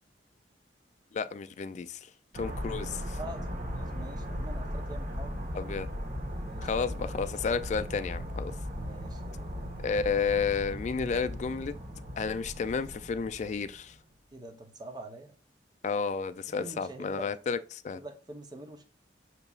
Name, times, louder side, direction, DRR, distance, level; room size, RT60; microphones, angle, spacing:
voice 1, 1.1-3.2 5.5-5.9 6.6-8.5 9.8-11.8 12.2-14.0 15.8-18.0, left 5 dB, 40° left, 0.3 m, -32 dB
sound 1, 2.3-14.0, equal, 40° right, 1.1 m, -37 dB
voice 2, 3.2-5.4 6.4-6.7 8.7-9.6 14.3-15.3 16.5-17.3 17.9-18.8, right 2 dB, 25° right, 0.7 m, -45 dB
6.7 x 2.9 x 2.3 m
head